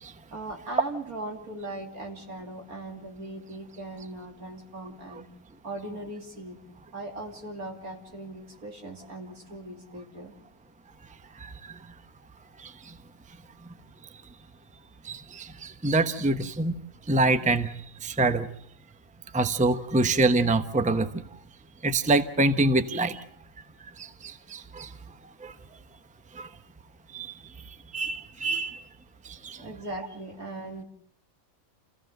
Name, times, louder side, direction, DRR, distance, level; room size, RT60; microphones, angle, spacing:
voice 1, 0.3-5.3 5.6-6.6 6.9-10.3 29.5-30.8, right 2 dB, 85° right, 2 dB, 3.5 m, -39 dB
voice 2, 15.0-16.8 17.1-18.5 19.3-21.1 21.8-23.2 24.0-24.9 25.4-25.5 26.3-26.5 27.1-27.3 27.7-28.8 29.2-29.6, right 2 dB, 5° right, 9 dB, 0.8 m, -26 dB
28.5 x 16.0 x 7.9 m, 0.69 s
omnidirectional pair, 1.5 m